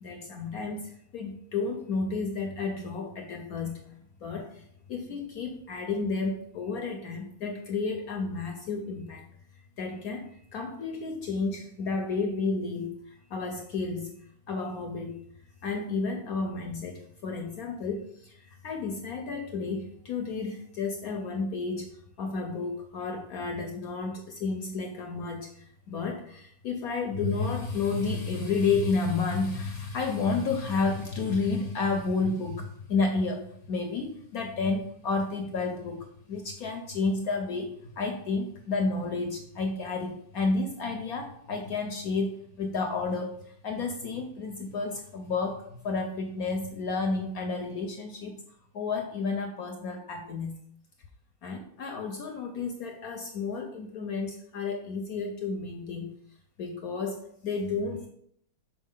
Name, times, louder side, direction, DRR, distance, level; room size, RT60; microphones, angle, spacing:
voice 1, 0.0-3.8 4.2-4.6 4.9-9.2 9.8-13.0 13.3-14.1 14.5-15.2 15.6-18.3 18.6-21.9 22.2-25.5 25.9-37.7 38.0-48.4 48.7-50.6 51.4-56.1 56.6-58.1, left 4 dB, 70° left, 3 dB, 0.9 m, -31 dB
6.3 x 4.5 x 3.7 m, 0.69 s
omnidirectional pair, 2.2 m